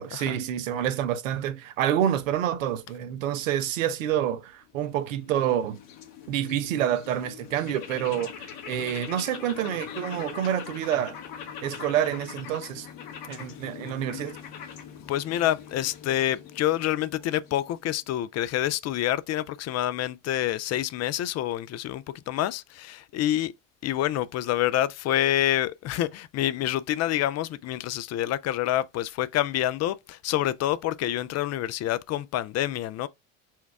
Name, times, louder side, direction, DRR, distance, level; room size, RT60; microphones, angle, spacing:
voice 1, 0.0-5.8 6.3-11.2 11.6-12.9 13.3-14.4, right 10 dB, 90° right, 0.6 m, -28 dB
sound 1, 4.6-18.0, left 8 dB, 65° left, 1.1 m, -42 dB
voice 2, 15.1-23.5 23.8-33.1, left 13 dB, 45° left, 0.4 m, -27 dB
4.4 x 2.3 x 4.5 m
hypercardioid pair, 70°, 38 cm